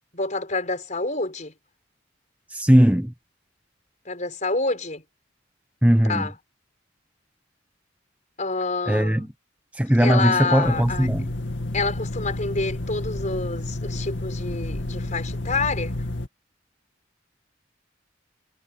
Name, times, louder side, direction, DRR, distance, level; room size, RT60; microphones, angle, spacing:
voice 1, 0.1-1.5 4.0-5.0 6.1-6.3 8.4-9.3 10.0-11.1 11.7-15.9, left 3 dB, 40° left, 5.0 m, -27 dB
voice 2, 2.5-3.1 5.8-6.3 8.9-9.3 9.7-11.3, equal, 5° right, 0.9 m, -19 dB
sound 1, 10.6-16.3, left 1 dB, 65° left, 2.6 m, -30 dB
head